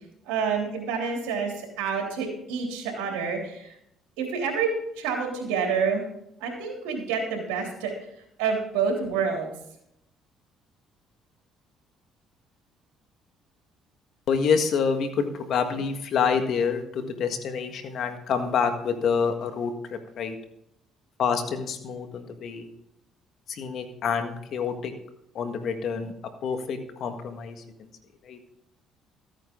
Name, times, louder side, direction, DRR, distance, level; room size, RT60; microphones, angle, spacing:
voice 1, 0.2-3.7 4.2-4.7 5.0-6.0 6.4-7.9 8.4-9.5, right 6 dB, 90° right, 0 dB, 3.2 m, -28 dB
voice 2, 14.3-20.3 21.2-22.7 23.5-24.9 25.3-26.1 26.4-27.9 28.2-28.4, left 6 dB, 65° left, 7 dB, 1.6 m, -27 dB
14.0 x 9.1 x 3.8 m, 0.78 s
supercardioid pair, 75°, 0 cm